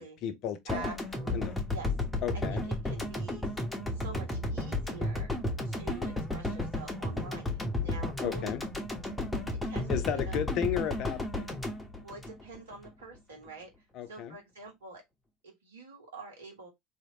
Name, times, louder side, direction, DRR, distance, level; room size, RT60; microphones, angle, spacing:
voice 1, 0.0-1.0 1.3-1.5 2.2-2.7 8.2-8.6 9.9-11.5 13.9-14.4, left 9 dB, 50° left, 0.6 m, -33 dB
sound 1, 0.7-12.9, left 1 dB, 10° left, 1.0 m, -33 dB
voice 2, 0.7-1.9 2.5-3.5 3.9-5.3 5.6-8.5 9.6-10.4 12.0-13.7 14.1-15.0 15.4-16.7, right 3 dB, 75° right, 1.4 m, -46 dB
3.1 x 2.8 x 2.9 m
figure-of-eight pair, 75°, 0 cm